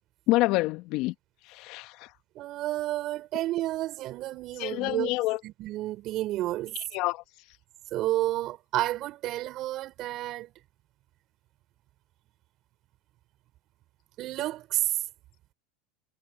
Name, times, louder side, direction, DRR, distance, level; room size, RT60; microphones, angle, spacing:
voice 1, 0.3-1.1 1.5-2.1 4.6-5.4 6.9-7.2, left 20 dB, 55° left, 1.5 m, -27 dB
voice 2, 2.3-5.2 5.4-6.8 7.9-10.5 14.2-14.9, right 15 dB, 50° right, 5.1 m, -31 dB
hypercardioid pair, 100°, 0 cm